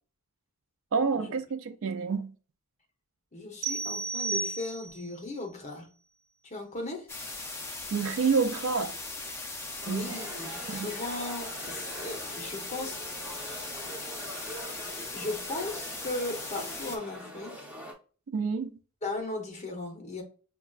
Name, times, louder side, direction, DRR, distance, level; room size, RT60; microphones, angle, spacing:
voice 1, 0.9-2.3 7.9-8.9 9.9-10.2 10.7-10.9 18.3-18.8, right 5 dB, 60° right, 0.4 m, -28 dB
voice 2, 3.3-5.9 6.4-7.1 9.9-13.3 15.1-17.7 19.0-20.2, left 2 dB, 30° left, 0.8 m, -37 dB
sound 1, 3.6-5.2, right 4 dB, 90° right, 1.1 m, -33 dB
sound 2, 7.1-17.0, left 3 dB, 10° left, 0.4 m, -39 dB
sound 3, 9.8-17.9, right 1 dB, 5° right, 0.8 m, -44 dB
5.9 x 2.2 x 2.3 m
head